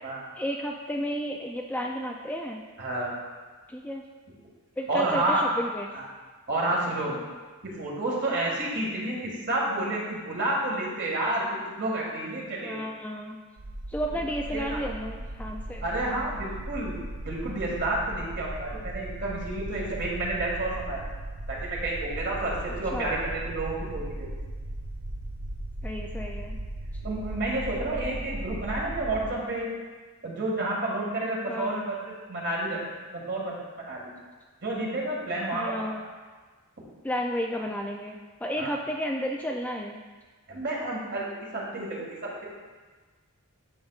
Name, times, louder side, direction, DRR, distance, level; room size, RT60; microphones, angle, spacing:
voice 1, 0.3-2.6 3.7-4.0 4.8-5.9 12.6-13.4 13.9-15.8 22.9-23.1 25.8-26.6 27.8-28.0 31.5-32.0 35.5-36.0 37.0-40.0, equal, 5° left, 0 dB, 0.3 m, -32 dB
voice 2, 2.8-3.1 4.9-5.4 5.9-6.0 6.5-7.1 7.6-12.8 14.5-14.8 15.8-17.0 17.2-21.0 21.5-24.3 27.0-29.7 30.2-32.0 32.3-32.8 33.1-34.0 34.6-36.1 38.6-38.7 40.5-42.4, right 2 dB, 50° right, -3 dB, 1.9 m, -30 dB
sound 1, 13.6-29.3, right 1 dB, 75° right, 0.7 m, -37 dB
10.5 x 6.4 x 2.4 m, 1.4 s
head